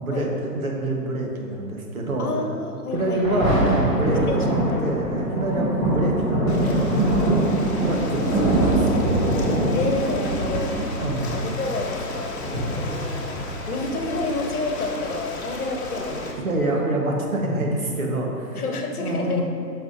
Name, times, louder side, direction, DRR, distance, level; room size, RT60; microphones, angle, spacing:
voice 1, 0.0-2.3 2.9-7.3 7.8-9.0 11.0-11.3 16.4-18.6 19.0-19.4, right 1 dB, 60° right, 0 dB, 1.4 m, -26 dB
voice 2, 2.2-3.5 4.3-4.9 9.7-10.8 11.3-16.6 18.5-19.4, left 3 dB, 65° left, 2 dB, 1.1 m, -30 dB
Thunder, 2.9-13.9 14.5-14.6, right 1 dB, 15° right, 1.5 m, -23 dB
Ocean, 6.5-16.3, left 2 dB, 40° left, 0.9 m, -34 dB
10.5 x 5.8 x 2.7 m, 2.6 s
hypercardioid pair, 175°, 49 cm